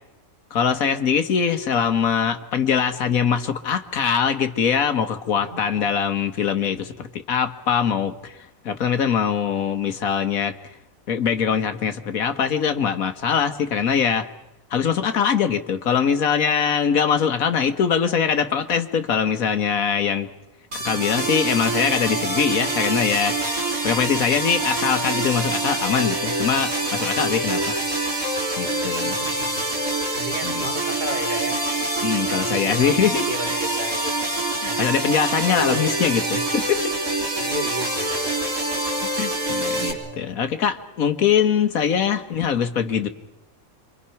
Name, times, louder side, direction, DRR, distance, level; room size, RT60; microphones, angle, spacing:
voice 1, 0.5-8.4 8.6-10.5 11.1-14.3 14.7-20.3 20.7-23.4 23.8-27.8 28.6-29.2 30.4-30.7 32.0-33.2 34.6-36.9 39.2-43.1, left 7 dB, 75° left, 10 dB, 1.6 m, -22 dB
voice 2, 5.3-5.8 14.9-15.0 20.7-21.1 29.0-29.7 30.1-31.6 32.4-34.3 34.7-35.0 35.5-36.1 37.4-38.8 39.9-40.4 42.0-42.1, equal, 35° right, 3 dB, 2.2 m, -35 dB
sound 1, 20.7-39.9, right 2 dB, 75° right, 4.1 m, -25 dB
27.5 x 24.0 x 5.8 m, 0.93 s
omnidirectional pair, 1.5 m